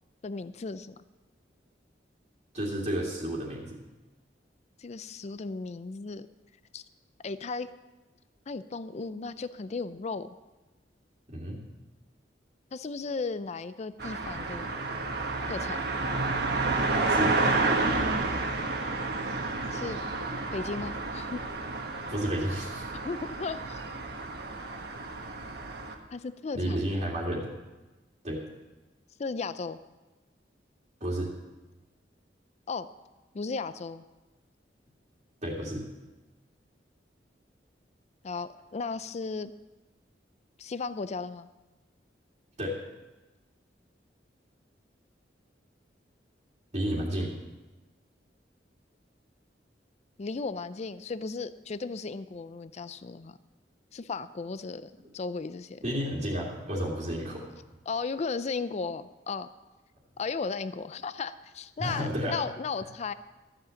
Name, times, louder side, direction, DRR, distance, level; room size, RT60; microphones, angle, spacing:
voice 1, 0.2-1.0 4.8-6.3 6.7-6.8 7.2-7.7 8.5-10.3 12.7-14.8 15.5-15.8 19.7-20.0 20.5-21.4 23.0-24.0 26.1-26.8 29.2-29.8 32.7-32.9 33.3-34.0 38.2-39.5 40.6-41.5 50.2-53.4 53.9-55.8 57.9-59.5 60.2-63.1, left 4 dB, 40° left, 14 dB, 0.4 m, -35 dB
voice 2, 2.5-3.8 11.3-11.6 17.1-17.4 22.1-22.8 26.5-27.5 28.2-28.4 31.0-31.3 35.4-35.9 42.6-42.8 46.7-47.3 55.8-57.5 61.8-62.4, equal, 40° right, -4 dB, 2.2 m, -31 dB
sound 1, 14.0-25.9, right 3 dB, 65° right, 1.4 m, -30 dB
13.5 x 7.8 x 7.0 m, 1.1 s
head